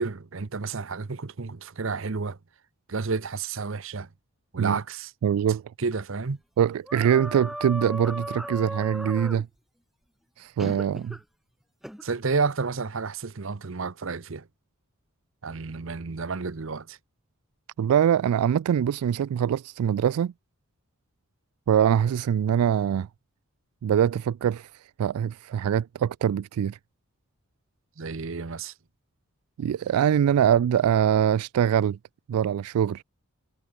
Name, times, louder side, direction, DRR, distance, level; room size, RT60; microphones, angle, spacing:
voice 1, 0.0-2.4 2.9-4.1 4.5-5.1 5.8-6.4 12.0-14.5 15.4-17.0 28.0-28.7, right 4 dB, 60° right, 0.7 m, -31 dB
voice 2, 5.2-5.6 6.6-9.5 10.4-11.2 17.8-20.3 21.7-23.1 23.8-26.8 29.6-32.0 32.3-33.0, right 9 dB, 85° right, 0.3 m, -23 dB
sound 1, 6.9-9.4 10.6-11.2 11.8-12.0, equal, ahead, 0.8 m, -36 dB
head